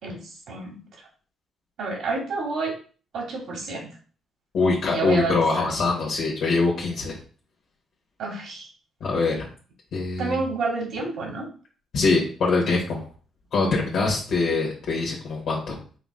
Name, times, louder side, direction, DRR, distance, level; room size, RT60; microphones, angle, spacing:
voice 1, 0.0-0.8 1.8-2.7 3.1-3.9 4.9-5.7 8.2-8.7 10.2-11.5, right 3 dB, 75° right, 0 dB, 1.6 m, -29 dB
voice 2, 4.5-7.2 9.0-9.5 9.9-10.4 11.9-13.1 13.5-15.8, left 3 dB, 70° left, -2 dB, 1.3 m, -23 dB
4.8 x 3.7 x 2.2 m, 0.39 s
cardioid pair, 90°, 0 cm